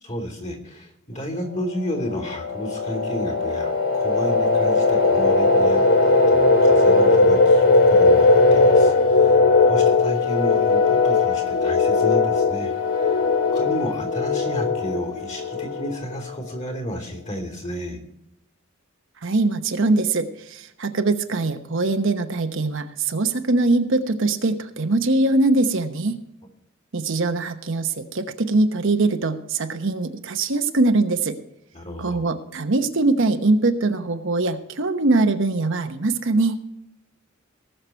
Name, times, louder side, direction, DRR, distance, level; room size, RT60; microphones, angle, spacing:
voice 1, 0.0-9.4 9.7-13.2 13.5-18.0 31.7-32.3, equal, 35° left, 2 dB, 3.2 m, -32 dB
sound 1, 1.9-16.4, left 3 dB, 75° left, 2.0 m, -18 dB
voice 2, 19.2-26.1 26.9-31.4 32.0-36.6, right 2 dB, 65° right, 7 dB, 1.0 m, -22 dB
19.0 x 6.7 x 4.4 m, 0.84 s
head